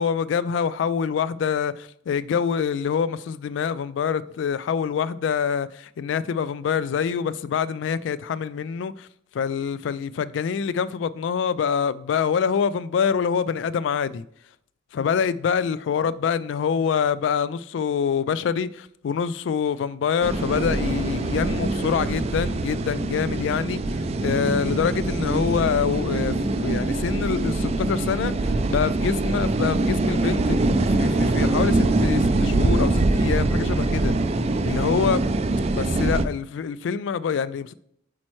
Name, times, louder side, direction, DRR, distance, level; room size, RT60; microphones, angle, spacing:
voice 1, 0.0-9.1 9.3-14.2 14.9-23.8 24.2-34.1 34.6-35.2 35.7-37.7, left 7 dB, 70° left, 0.3 m, -25 dB
sound 1, 20.2-36.3, right 2 dB, 35° right, 0.4 m, -23 dB
8.7 x 4.3 x 3.1 m
head